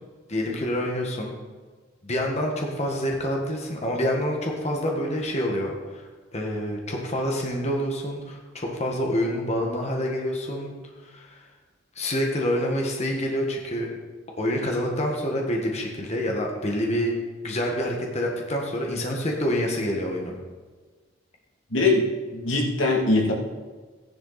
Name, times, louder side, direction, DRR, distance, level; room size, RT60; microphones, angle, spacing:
voice 1, 0.3-1.3 2.0-6.0 6.3-10.7 11.1-11.4 12.0-13.9 14.4-17.1 17.4-20.4, equal, 35° left, 0 dB, 1.7 m, -27 dB
voice 2, 21.7-22.0 22.3-23.3, left 2 dB, 80° left, -1 dB, 2.6 m, -21 dB
14.5 x 11.0 x 4.2 m, 1.4 s
head